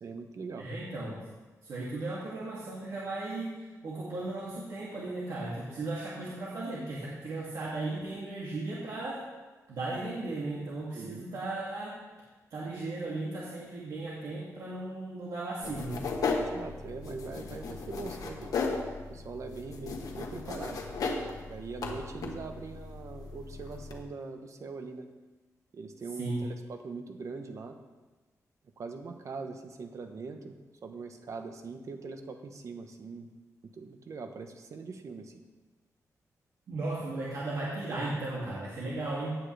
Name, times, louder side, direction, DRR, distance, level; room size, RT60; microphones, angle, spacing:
voice 1, 0.0-0.7 10.9-11.3 16.5-18.5 19.1-20.9 21.4-25.1 25.7-27.8 28.8-33.3 33.6-35.3, right 4 dB, 60° right, 6 dB, 1.1 m, -42 dB
voice 2, 0.6-1.2 1.6-9.2 9.7-12.0 12.5-16.1 26.2-26.4 36.7-39.4, right 2 dB, 75° right, -7 dB, 2.5 m, -36 dB
sound 1, 15.6-24.0, left 4 dB, 90° left, 1.4 m, -36 dB
17.0 x 9.2 x 3.4 m, 1.2 s
wide cardioid pair, 135°, 6 cm